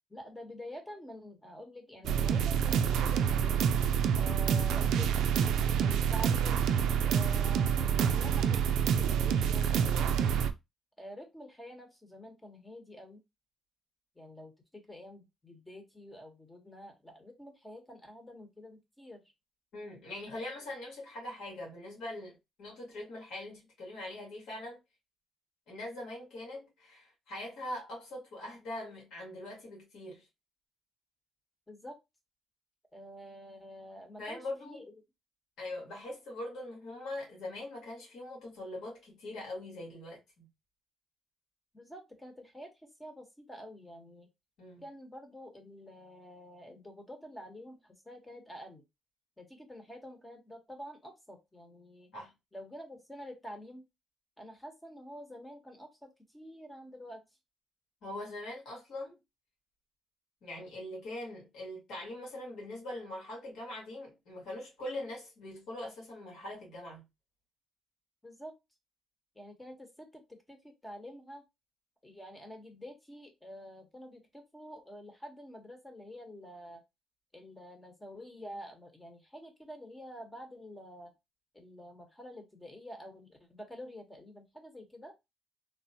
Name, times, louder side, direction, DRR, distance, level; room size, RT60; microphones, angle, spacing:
voice 1, 0.1-3.6 4.1-5.1 5.8-6.6 7.0-10.4 11.0-13.2 14.1-19.2 20.3-20.4 31.7-32.0 32.9-34.9 41.7-42.7 43.0-44.3 44.8-48.8 49.4-52.1 52.5-53.8 54.4-57.2 68.2-68.5 69.3-70.2 70.5-71.4 72.0-76.8 77.3-81.1 81.5-85.1, equal, 15° left, 1.0 m, -48 dB
sound 1, 2.0-10.5, right 8 dB, 85° right, 0.3 m, -27 dB
voice 2, 19.7-24.8 25.7-30.3 34.2-34.8 35.6-40.5 44.6-44.8 52.1-52.3 58.0-59.2 60.4-67.0, left 1 dB, 75° left, 1.8 m, -42 dB
3.3 x 2.1 x 2.7 m
cardioid pair, 90°, 0 cm